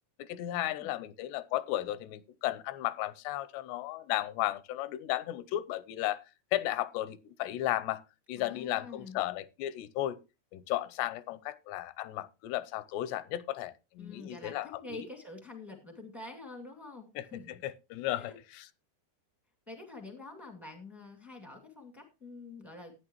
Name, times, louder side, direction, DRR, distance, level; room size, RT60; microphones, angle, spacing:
voice 1, 0.2-6.2 6.5-8.0 8.3-10.2 10.5-15.1 17.2-17.3 17.6-18.7, left 14 dB, 85° left, 2.8 m, -34 dB
voice 2, 8.3-9.2 14.0-17.6 18.1-18.4 19.7-22.9, left 3 dB, ahead, 0.7 m, -47 dB
15.0 x 9.5 x 3.0 m
omnidirectional pair, 4.7 m